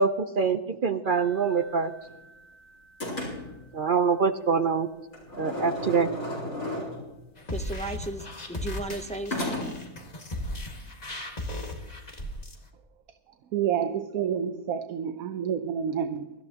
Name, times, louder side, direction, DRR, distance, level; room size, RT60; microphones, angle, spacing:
voice 1, 0.0-1.9 3.7-4.9 5.4-6.1, right 5 dB, 55° right, 9 dB, 0.6 m, -24 dB
sound 1, 1.0-2.5 3.0-3.7 5.1-7.2 9.3-10.0, left 1 dB, 65° left, 4.8 m, -35 dB
sound 2, 7.4-12.6, left 1 dB, 30° left, 1.7 m, -36 dB
voice 2, 7.5-9.7, right 1 dB, 10° left, 6 dB, 0.4 m, -35 dB
voice 3, 13.5-16.3, right 8 dB, 75° right, 9 dB, 1.1 m, -29 dB
23.5 x 13.0 x 2.9 m, 1.0 s
omnidirectional pair, 1.5 m